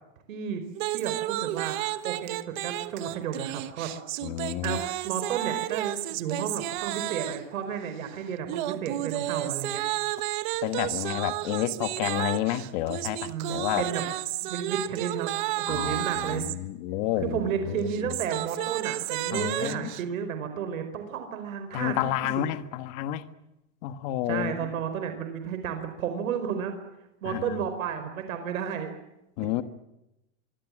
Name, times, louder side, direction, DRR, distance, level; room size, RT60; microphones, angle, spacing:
voice 1, 0.3-0.6 0.9-3.9 4.6-9.8 13.2-14.1 14.4-15.3 15.6-16.5 17.2-22.5 24.3-26.7 27.2-28.9 29.4-29.6, right 8 dB, 75° right, 4.9 m, -32 dB
sound 1, 0.7-7.5 8.5-16.6 17.8-20.0, right 16 dB, 35° right, 1.1 m, -32 dB
voice 2, 4.2-4.8 10.6-13.9 15.7-17.4 17.7-18.1 19.3-19.9 21.7-23.2 23.8-24.5 27.2-27.6 29.4-29.6, left 14 dB, 30° left, 1.4 m, -30 dB
25.0 x 24.0 x 7.5 m
supercardioid pair, 180°, 41 cm